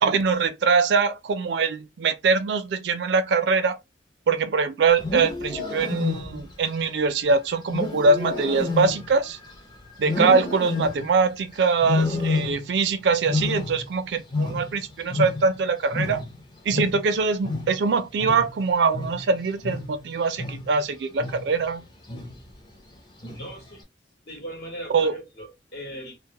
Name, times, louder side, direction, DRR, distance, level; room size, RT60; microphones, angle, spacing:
voice 1, 0.0-3.8 4.3-9.4 10.0-16.2 16.7-21.8 24.9-25.1, right 4 dB, 70° right, 0.4 m, -23 dB
Wild animals, 4.9-6.6 7.7-9.6 10.0-11.2 11.8-12.9 13.1-15.7 15.9-20.8 21.2-21.6 22.1-22.5 23.2-23.7, left 3 dB, 25° left, 0.5 m, -29 dB
voice 2, 23.3-23.8 24.3-26.2, right 1 dB, 60° left, 1.0 m, -38 dB
2.2 x 2.0 x 2.8 m
head